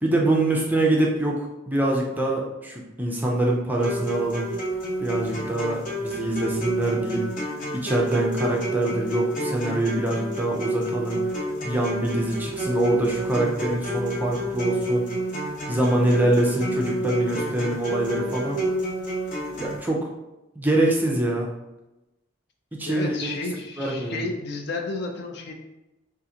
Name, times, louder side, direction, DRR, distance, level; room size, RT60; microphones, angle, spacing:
voice 1, 0.0-4.5 5.0-7.2 7.7-11.2 11.6-15.1 15.7-18.6 19.6-20.1 20.6-21.5 22.8-23.4 23.8-24.2, right 1 dB, 10° right, -2 dB, 0.4 m, -24 dB
sound 1, 3.8-19.8, right 1 dB, 40° left, 0.8 m, -29 dB
voice 2, 22.9-25.5, left 3 dB, 55° left, 3 dB, 0.4 m, -31 dB
3.7 x 2.5 x 2.7 m, 0.98 s
head